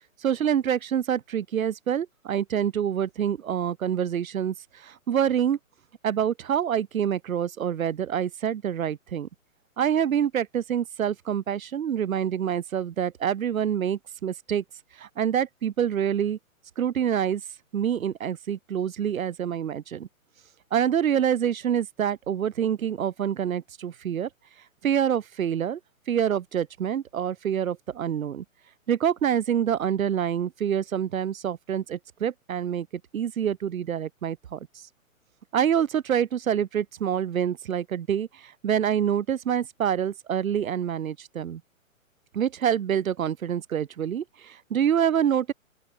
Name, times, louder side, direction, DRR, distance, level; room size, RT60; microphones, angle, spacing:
voice 1, 0.2-5.6 6.0-9.3 9.8-14.6 15.0-16.4 16.8-17.4 17.7-20.1 20.7-24.3 24.8-25.8 26.1-28.4 28.9-34.7 35.5-41.6 42.3-45.5, right 9 dB, 80° right, 1.2 m, -26 dB
open air
hypercardioid pair, 160°, 41 cm